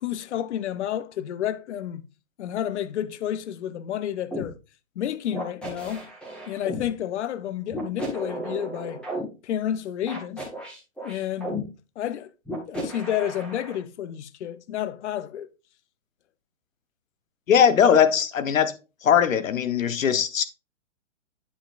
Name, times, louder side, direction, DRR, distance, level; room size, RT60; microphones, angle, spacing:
voice 1, 0.0-2.1 2.4-4.5 5.0-6.1 6.5-9.0 9.4-10.5 11.0-11.6 12.0-12.3 12.7-15.5, left 10 dB, 60° left, 0.7 m, -30 dB
sound 1, 4.3-4.5 5.3-6.8 7.7-9.2 10.1-11.6 12.4-13.8, right 1 dB, 5° left, 1.4 m, -34 dB
voice 2, 17.5-18.8 19.0-20.4, left 8 dB, 90° left, 1.0 m, -20 dB
9.6 x 5.7 x 2.4 m
hypercardioid pair, 155°, 39 cm